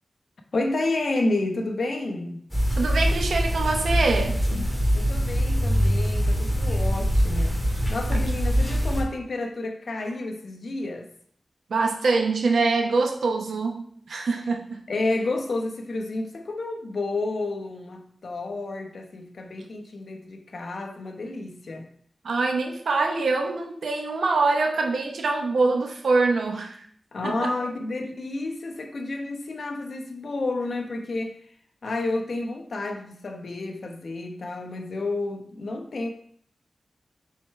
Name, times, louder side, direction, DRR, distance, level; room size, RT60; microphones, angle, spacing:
voice 1, 0.5-2.4 4.9-7.5 7.9-11.1 14.9-21.9 27.1-31.4 31.8-36.1, left 2 dB, 65° left, 3 dB, 1.1 m, -30 dB
sound 1, 2.5-9.0, equal, ahead, 2.0 m, -23 dB
voice 2, 2.7-4.4 8.1-8.3 11.7-14.8 22.2-26.8 27.2-27.5, right 3 dB, 90° right, 2 dB, 0.9 m, -24 dB
7.1 x 4.7 x 3.2 m, 0.62 s
wide cardioid pair, 70°, 0 cm